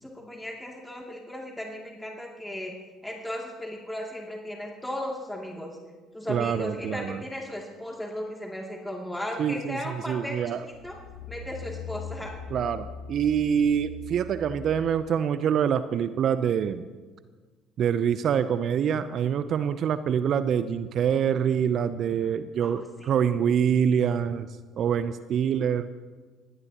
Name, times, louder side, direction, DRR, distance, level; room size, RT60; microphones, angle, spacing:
voice 1, 0.0-2.7 3.0-5.8 6.1-10.5 10.8-11.0 11.3-12.3 22.6-22.7 23.0-23.1, left 1 dB, 5° left, 0 dB, 2.6 m, -36 dB
voice 2, 6.3-7.2 9.4-10.7 12.5-16.9 17.8-24.5 24.8-25.9, right 8 dB, 50° right, 13 dB, 0.6 m, -25 dB
sound 1, 10.7-15.1 15.6-15.7, left 5 dB, 75° left, 1.0 m, -41 dB
25.0 x 17.5 x 3.0 m, 1.4 s
figure-of-eight pair, 55°, 0 cm